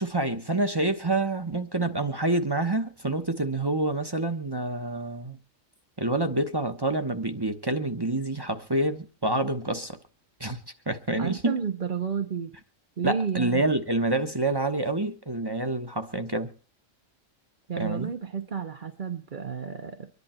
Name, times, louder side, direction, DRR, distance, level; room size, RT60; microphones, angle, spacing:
voice 1, 0.0-5.4 6.0-10.0 10.4-10.6 10.9-11.6 13.0-16.5 17.8-18.1, right 2 dB, 20° right, 1.0 m, -27 dB
voice 2, 11.2-12.5 13.0-13.7 17.7-20.1, right 6 dB, 40° right, 1.1 m, -31 dB
25.0 x 11.0 x 4.4 m
omnidirectional pair, 1.3 m